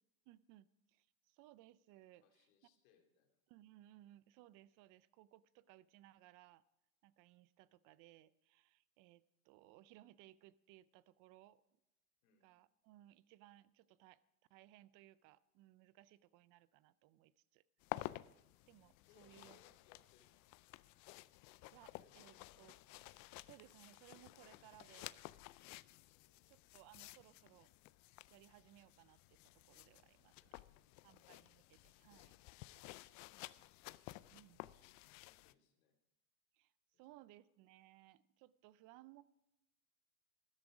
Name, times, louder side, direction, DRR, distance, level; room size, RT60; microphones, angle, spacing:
voice 1, 0.3-2.2 3.5-6.6 7.0-11.6 12.4-14.2 14.5-17.6 18.7-19.6 21.7-23.0 23.4-25.2 26.5-27.7 28.3-30.6 31.0-32.3 34.3-34.6 36.5-39.2, right 15 dB, 45° right, 19 dB, 0.6 m, -63 dB
voice 2, 2.2-3.4 12.2-12.5 19.0-20.4 22.0-22.7 26.1-26.9 30.4-31.6 34.1-36.0 37.2-37.3, left 7 dB, 65° left, 3 dB, 2.7 m, -74 dB
sound 1, 17.8-35.5, left 19 dB, 40° left, 0.4 m, -53 dB
13.0 x 12.0 x 4.9 m, 0.93 s
supercardioid pair, 110°, 44 cm